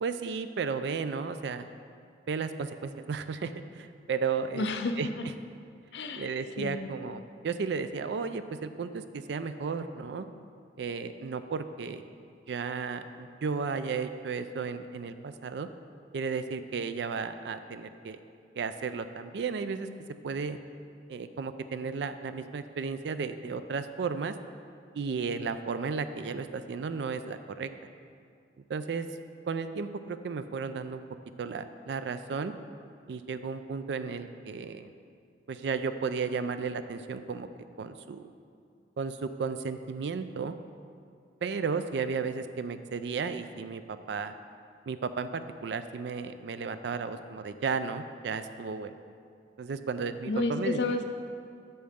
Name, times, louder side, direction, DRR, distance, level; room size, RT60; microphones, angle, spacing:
voice 1, 0.0-1.7 2.3-4.7 5.0-5.1 6.1-10.3 10.8-12.0 12.5-15.7 16.1-18.2 18.6-19.9 20.2-20.6 21.1-24.3 24.9-27.7 28.7-29.1 29.5-31.0 31.4-32.5 33.1-34.9 35.5-37.5 37.8-38.3 39.0-40.5 41.4-44.3 44.9-48.9 49.6-50.8, right 5 dB, 75° right, 11 dB, 0.4 m, -34 dB
voice 2, 4.5-5.2 5.9-6.3 6.6-6.9 50.3-51.1, left 2 dB, 75° left, 6 dB, 0.6 m, -31 dB
8.6 x 6.4 x 3.6 m, 2.3 s
head